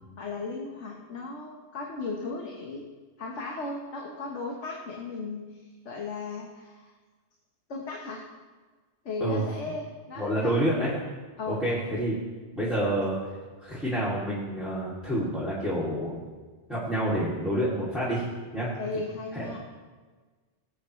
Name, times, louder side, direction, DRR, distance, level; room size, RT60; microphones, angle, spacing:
voice 1, 0.2-2.8 3.2-6.9 7.7-8.2 9.0-10.5 11.4-11.6 18.8-19.6, left 3 dB, 90° left, -1 dB, 1.6 m, -36 dB
voice 2, 10.2-10.9 11.5-12.2 12.5-13.2 13.6-16.2 16.7-18.2 18.5-18.7 19.4-19.6, right 1 dB, ahead, -9 dB, 2.5 m, -28 dB
19.5 x 8.2 x 3.2 m, 1.4 s
omnidirectional pair, 1.2 m